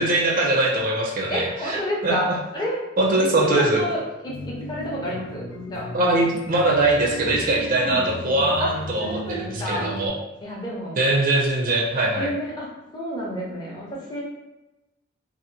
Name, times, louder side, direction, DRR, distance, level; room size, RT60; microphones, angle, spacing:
voice 1, 0.0-2.3 3.0-3.8 5.9-10.1 11.0-12.3, right 2 dB, 45° right, -1 dB, 0.4 m, -22 dB
voice 2, 1.3-2.8 3.2-5.9 7.8-8.1 8.6-8.7 9.0-9.9 10.4-11.0 12.2-12.7 12.9-14.2, equal, 20° left, -4 dB, 0.6 m, -30 dB
sound 1, 4.3-10.1, equal, 75° left, 0.5 m, -35 dB
2.7 x 2.4 x 2.6 m, 0.99 s
head